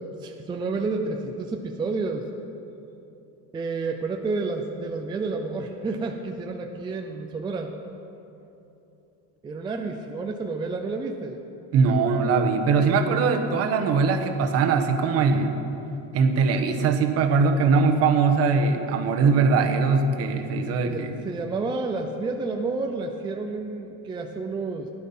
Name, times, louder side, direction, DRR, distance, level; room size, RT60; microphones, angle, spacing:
voice 1, 0.0-2.3 3.5-7.7 9.4-11.4 20.9-24.9, right 3 dB, 15° right, 3 dB, 0.5 m, -30 dB
voice 2, 11.7-15.6 16.1-21.1, right 4 dB, 45° right, 5 dB, 1.2 m, -21 dB
16.5 x 11.5 x 5.5 m, 2.9 s
cardioid pair, 180°, 33 cm